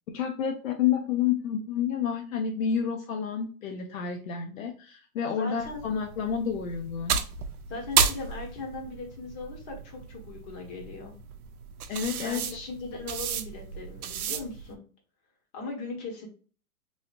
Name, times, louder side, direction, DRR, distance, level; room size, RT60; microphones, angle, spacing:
voice 1, 0.1-7.2 11.9-12.4, left 8 dB, 70° left, 4 dB, 0.6 m, -29 dB
voice 2, 5.4-5.8 7.7-11.1 12.2-14.8 15.5-16.3, left 3 dB, 35° left, 1 dB, 1.4 m, -38 dB
sound 1, 5.6-14.7, right 7 dB, 90° right, 0.6 m, -33 dB
3.2 x 2.7 x 2.5 m, 0.38 s
hypercardioid pair, 125°, 42 cm